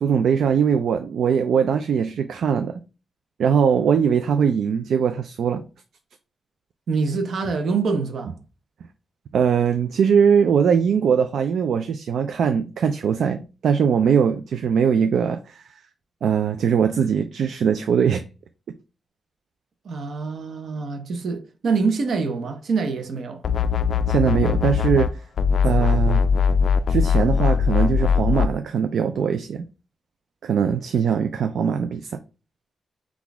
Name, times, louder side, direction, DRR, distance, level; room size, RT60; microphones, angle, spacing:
voice 1, 0.0-2.8 3.4-5.6 9.3-15.6 16.2-18.2 24.1-25.1 25.6-26.2 26.9-29.7 30.4-32.1, right 7 dB, 85° right, 0.3 m, -21 dB
voice 2, 6.9-8.3 19.8-23.4, right 4 dB, 65° right, 0.7 m, -25 dB
sound 1, 23.4-25.1 25.4-28.5, left 6 dB, 60° left, 0.3 m, -20 dB
6.0 x 2.4 x 3.5 m
wide cardioid pair, 170°, 0 cm